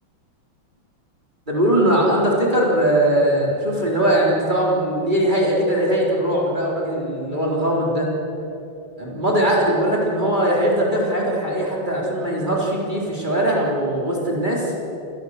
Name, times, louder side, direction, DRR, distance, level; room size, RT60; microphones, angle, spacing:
voice 1, 1.5-8.1 9.0-14.7, right 1 dB, 20° right, -3 dB, 4.1 m, -20 dB
28.5 x 20.5 x 6.7 m, 2.9 s
omnidirectional pair, 2.3 m